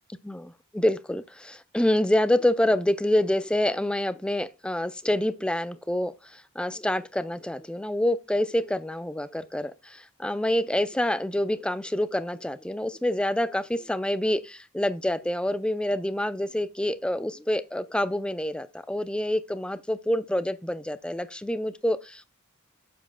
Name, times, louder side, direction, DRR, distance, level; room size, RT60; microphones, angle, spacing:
voice 1, 0.2-22.2, left 1 dB, 5° left, 0.4 m, -27 dB
7.3 x 7.3 x 2.2 m
head